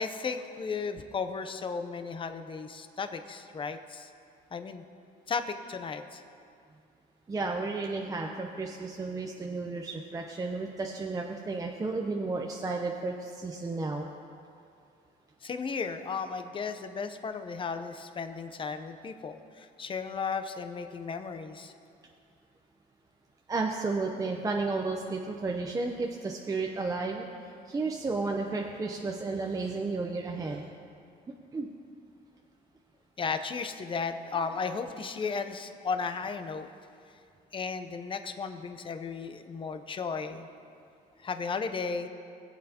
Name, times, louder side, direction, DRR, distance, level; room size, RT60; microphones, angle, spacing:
voice 1, 0.0-4.1 4.5-4.8 5.3-6.2 15.4-21.7 33.2-36.7 37.5-40.5 41.2-42.1, left 5 dB, 30° left, 8 dB, 0.7 m, -35 dB
voice 2, 7.3-14.1 23.5-27.3 27.7-30.7 31.5-31.7, right 3 dB, 20° right, 1 dB, 0.7 m, -32 dB
20.0 x 7.7 x 2.9 m, 2.4 s
cardioid pair, 110°, 17 cm